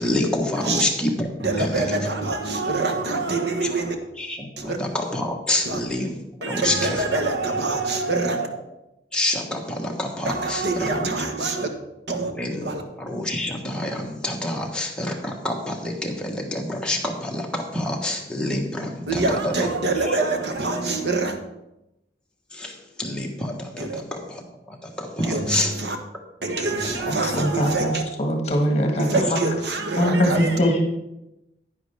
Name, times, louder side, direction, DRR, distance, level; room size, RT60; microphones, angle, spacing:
voice 1, 0.0-2.1 2.9-3.0 3.3-3.7 4.2-7.2 9.1-11.1 11.5-11.7 12.3-19.7 20.0-20.2 22.5-25.7 26.8-27.1 29.0-29.1, left 1 dB, 5° left, 1.3 m, -28 dB
voice 2, 1.4-4.0 4.6-4.8 5.6-5.8 6.4-8.5 10.2-11.7 12.1-12.3 12.6-12.8 19.1-21.4 23.8-24.0 25.2-26.0 26.4-28.0 29.0-30.6, right 3 dB, 75° right, 1.2 m, -25 dB
voice 3, 27.2-29.4 30.0-30.8, equal, 35° left, 1.6 m, -22 dB
10.0 x 9.8 x 3.4 m
head